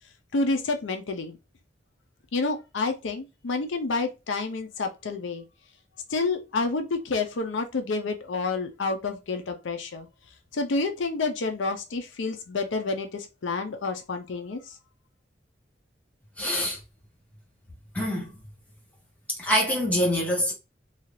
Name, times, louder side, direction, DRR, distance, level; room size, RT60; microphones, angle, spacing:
voice 1, 0.3-1.4 2.3-5.4 6.1-10.1 10.5-14.7, left 3 dB, 90° left, 0.6 m, -29 dB
voice 2, 16.4-16.8 17.9-18.3 19.4-20.5, equal, 10° left, 0.9 m, -25 dB
2.7 x 2.4 x 3.1 m
head